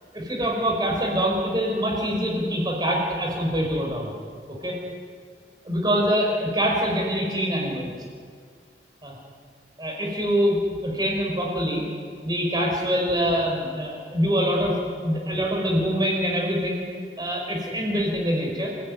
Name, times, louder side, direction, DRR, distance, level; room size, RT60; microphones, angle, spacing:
voice 1, 0.1-4.1 4.5-4.8 5.6-8.0 9.0-9.1 9.8-10.6 10.8-11.8 12.2-14.8 15.0-16.8 17.2-18.7, equal, 25° right, -1 dB, 5.3 m, -24 dB
28.0 x 17.0 x 9.6 m, 2.1 s
head